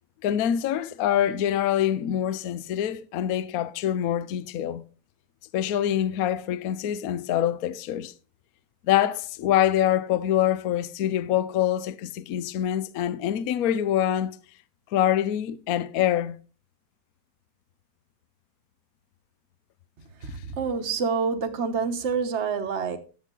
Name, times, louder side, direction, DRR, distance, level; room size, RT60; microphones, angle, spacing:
voice 1, 0.2-4.8 5.5-8.1 8.9-14.4 14.9-16.4, left 11 dB, 65° left, 0.9 m, -25 dB
voice 2, 20.2-23.0, right 5 dB, 45° right, 1.2 m, -27 dB
11.0 x 8.2 x 3.8 m
omnidirectional pair, 2.0 m